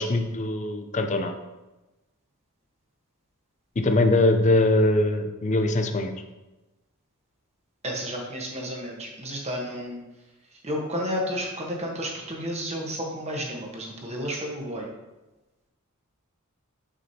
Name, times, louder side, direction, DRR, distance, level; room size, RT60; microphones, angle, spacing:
voice 1, 0.0-1.3 3.8-6.1, left 2 dB, 35° left, 7 dB, 0.5 m, -22 dB
voice 2, 7.8-10.0 10.6-14.9, equal, 30° right, -1 dB, 1.1 m, -31 dB
6.1 x 6.1 x 2.8 m, 1.1 s
head